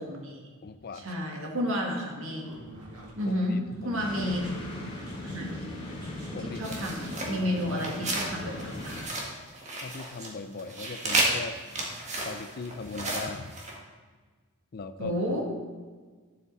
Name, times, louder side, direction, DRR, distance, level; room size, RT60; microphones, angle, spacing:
voice 1, 0.0-0.5 0.9-2.5 3.1-4.4 5.2-5.6 6.4-9.1 15.0-15.4, equal, 65° right, -1 dB, 2.0 m, -31 dB
voice 2, 0.6-1.1 3.3-4.0 5.3-5.4 6.3-6.8 7.1-8.3 9.8-11.6 12.1-13.5 14.7-15.2, left 4 dB, 45° left, 10 dB, 0.5 m, -40 dB
sound 1, 2.4-9.0, right 1 dB, 90° right, 1.8 m, -45 dB
sound 2, 4.0-9.0, left 1 dB, 25° left, 2.6 m, -39 dB
sound 3, 6.6-8.3 8.6-10.3 10.5-13.7, right 2 dB, 35° right, 1.7 m, -32 dB
11.0 x 7.4 x 4.1 m, 1.4 s
head